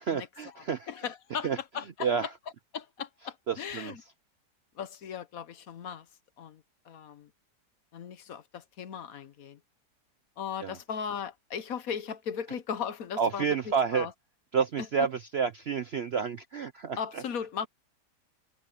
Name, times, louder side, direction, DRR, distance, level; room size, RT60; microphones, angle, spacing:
voice 1, 0.0-0.9 1.4-1.6 2.0-2.3 3.5-3.9 10.6-10.7 13.2-14.1 14.5-17.2, right 6 dB, 60° right, 0.7 m, -29 dB
voice 2, 0.5-2.3 2.7-4.0 4.8-6.1 6.4-7.3 7.9-9.6 10.4-14.1 14.8-14.9 17.0-17.7, left 7 dB, 60° left, 1.2 m, -37 dB
omnidirectional pair, 1.8 m